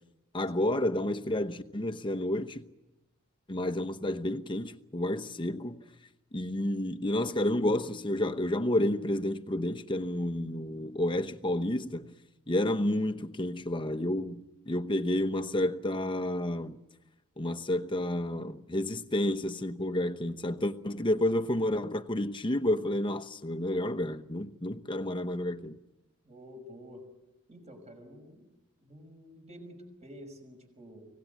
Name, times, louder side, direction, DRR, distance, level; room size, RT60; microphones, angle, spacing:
voice 1, 0.3-2.6 3.5-5.8 6.3-12.1 12.5-16.8 17.4-25.8, left 1 dB, 20° left, 0.9 m, -30 dB
voice 2, 26.2-27.0 27.5-28.4 28.8-31.2, equal, 30° right, 5.6 m, -49 dB
25.0 x 18.0 x 9.2 m
head